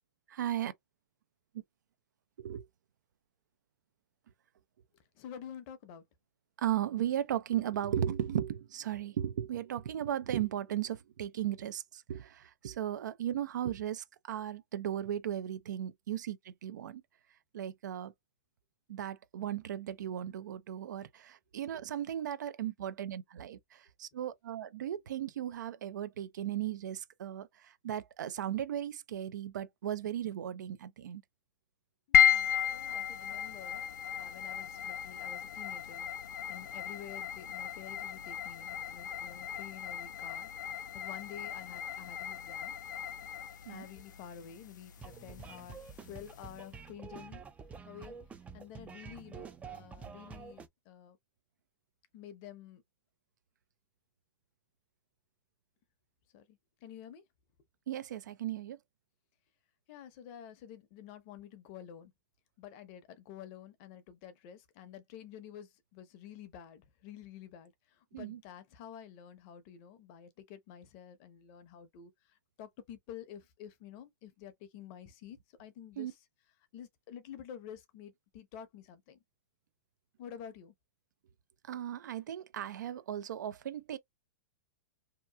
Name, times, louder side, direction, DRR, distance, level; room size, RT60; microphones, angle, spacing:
voice 1, 0.3-0.7 2.4-2.6 6.6-17.0 17.5-18.1 18.9-31.2 43.7-43.9 57.9-58.8 68.1-68.4 76.0-76.1 81.7-84.0, right 11 dB, 75° right, 0.5 m, -36 dB
voice 2, 5.2-6.0 32.1-33.8 34.2-36.1 36.5-40.5 40.9-42.8 43.7-45.8 46.1-47.4 47.9-48.2 48.5-51.2 52.1-52.8 56.3-57.2 59.9-62.1 62.6-67.7 68.1-72.1 72.6-76.2 76.7-79.2 80.2-80.7, left 9 dB, 45° left, 0.7 m, -49 dB
sound 1, 32.1-46.6, left 10 dB, 80° left, 0.4 m, -34 dB
sound 2, 45.0-50.7, right 6 dB, 15° right, 0.4 m, -48 dB
2.9 x 2.3 x 2.2 m
hypercardioid pair, 120°, 10 cm